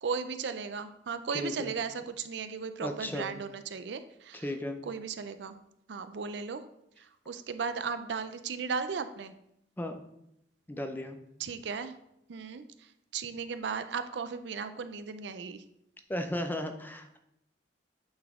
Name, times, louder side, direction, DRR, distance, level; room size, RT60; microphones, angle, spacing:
voice 1, 0.0-4.4 4.8-5.6 5.9-6.6 7.0-9.3 11.4-11.9 12.3-12.9 13.1-15.6, right 5 dB, 70° right, 11 dB, 0.5 m, -36 dB
voice 2, 1.3-1.7 2.8-3.3 4.4-4.8 9.8-10.0 10.7-11.2 16.1-17.2, left 1 dB, 10° left, 6 dB, 0.5 m, -35 dB
8.6 x 4.0 x 3.6 m, 0.80 s
head